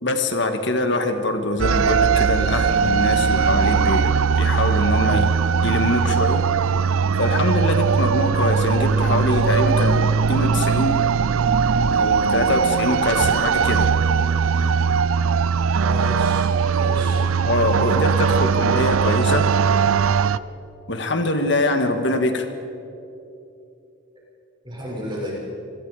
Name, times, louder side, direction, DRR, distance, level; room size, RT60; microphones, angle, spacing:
voice 1, 0.0-5.3 5.6-6.5 7.2-11.0 11.9-13.9 17.5-19.5 20.9-22.5, left 2 dB, 55° left, 6 dB, 1.9 m, -23 dB
sound 1, 1.6-20.4, right 6 dB, 85° right, 0.5 m, -19 dB
voice 2, 15.8-17.2 24.6-25.3, equal, 25° right, -5 dB, 6.5 m, -32 dB
26.5 x 21.0 x 5.0 m, 2.7 s
head